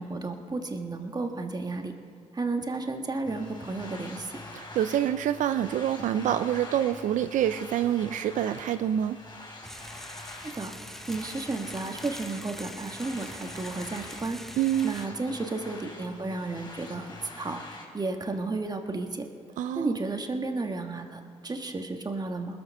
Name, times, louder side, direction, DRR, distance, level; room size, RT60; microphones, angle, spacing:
voice 1, 0.0-1.9 2.3-4.4 10.4-10.7 11.1-14.4 14.8-19.2 19.7-22.6, right 3 dB, 30° right, 4 dB, 1.5 m, -33 dB
sound 1, 3.3-17.8, left 2 dB, 35° left, 3.4 m, -45 dB
voice 2, 4.5-9.2 14.6-15.0 19.6-20.0, right 10 dB, 85° right, 11 dB, 0.4 m, -27 dB
sound 2, 9.6-15.1, equal, 5° left, 0.6 m, -44 dB
20.0 x 7.4 x 6.5 m, 2.1 s
cardioid pair, 65°, 13 cm